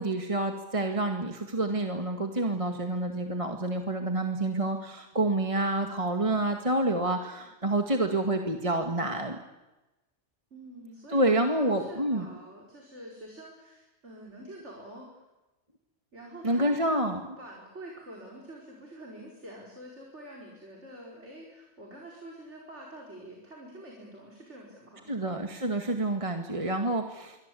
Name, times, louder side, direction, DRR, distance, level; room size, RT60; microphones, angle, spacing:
voice 1, 0.0-9.4 11.1-12.3 16.4-17.2 25.1-27.4, right 1 dB, 30° right, 4 dB, 2.1 m, -28 dB
voice 2, 10.5-15.1 16.1-16.9 17.4-25.2, right 1 dB, 75° right, -1 dB, 5.2 m, -46 dB
27.0 x 24.0 x 8.5 m, 1.0 s
omnidirectional pair, 1.2 m